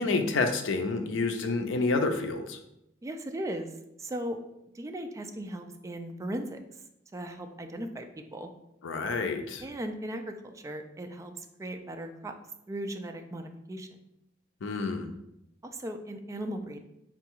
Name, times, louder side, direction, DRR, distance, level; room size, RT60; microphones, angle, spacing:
voice 1, 0.0-2.6 8.8-9.6 14.6-15.1, left 3 dB, 85° left, 6 dB, 0.5 m, -28 dB
voice 2, 3.0-3.7 4.0-4.4 4.7-6.6 7.1-8.1 8.3-8.5 9.6-12.3 12.7-13.9 15.6-16.8, right 1 dB, 15° right, 5 dB, 0.3 m, -37 dB
3.8 x 2.3 x 4.4 m, 0.83 s
head